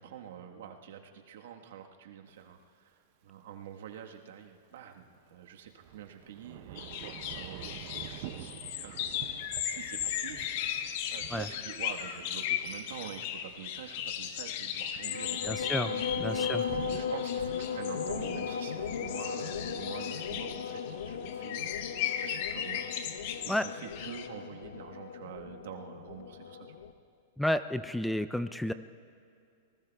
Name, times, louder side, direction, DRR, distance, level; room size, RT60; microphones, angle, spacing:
voice 1, 0.0-22.9 23.4-26.7, right 9 dB, 75° right, 3 dB, 1.3 m, -47 dB
Thunder / Rain, 2.3-2.4 5.3-17.0, right 12 dB, 50° right, 0.6 m, -48 dB
sound 1, 6.8-24.3, left 10 dB, 55° left, 0.9 m, -37 dB
sound 2, 15.0-26.9, left 6 dB, 85° left, 0.8 m, -37 dB
voice 2, 15.4-15.9 16.2-16.6 23.5-23.7 27.4-28.7, left 1 dB, ahead, 12 dB, 0.3 m, -31 dB
26.5 x 19.5 x 2.3 m, 2.4 s
supercardioid pair, 145°, 0 cm